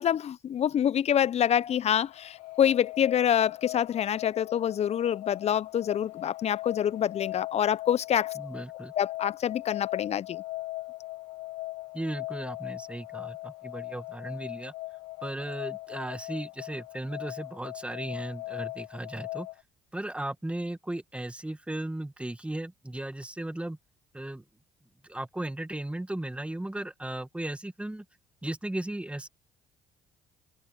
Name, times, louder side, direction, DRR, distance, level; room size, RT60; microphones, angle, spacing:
voice 1, 0.0-8.3 9.0-10.4, left 9 dB, 50° left, 0.9 m, -26 dB
sound 1, 1.6-19.6, left 19 dB, 75° left, 1.8 m, -40 dB
voice 2, 8.4-8.9 11.9-14.7 15.2-19.5 19.9-23.8 24.1-24.4 25.0-28.0 28.4-29.3, right 1 dB, 10° right, 1.8 m, -36 dB
hypercardioid pair, 55°, 14 cm